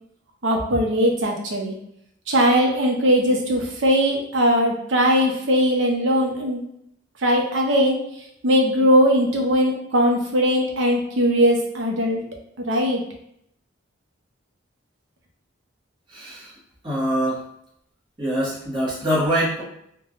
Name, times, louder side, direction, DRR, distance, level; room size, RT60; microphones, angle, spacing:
voice 1, 0.4-1.8 2.3-6.6 7.2-8.0 8.4-12.2 12.6-13.0, equal, 70° right, 1 dB, 0.6 m, -20 dB
voice 2, 16.1-16.5 16.8-17.4 18.2-19.6, equal, 25° right, -7 dB, 1.0 m, -23 dB
3.2 x 2.2 x 2.4 m, 0.74 s
head